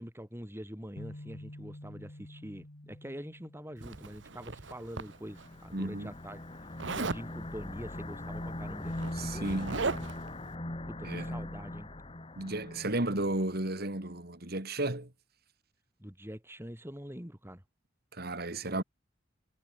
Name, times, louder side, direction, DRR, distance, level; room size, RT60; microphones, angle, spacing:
voice 1, 0.0-10.1 10.9-11.9 16.0-17.6 18.5-18.8, equal, 15° right, 4.9 m, -45 dB
sound 1, 1.0-5.0, left 1 dB, 60° left, 2.3 m, -49 dB
Zipper (clothing), 3.8-5.5 6.8-7.3 8.4-8.5 8.8-10.3, right 3 dB, 70° right, 1.2 m, -37 dB
sound 2, 5.0-13.6, left 1 dB, 30° left, 1.6 m, -41 dB
voice 2, 5.7-6.1 9.1-9.9 11.0-11.3 12.4-15.1 18.1-18.8, right 1 dB, 55° right, 3.0 m, -33 dB
head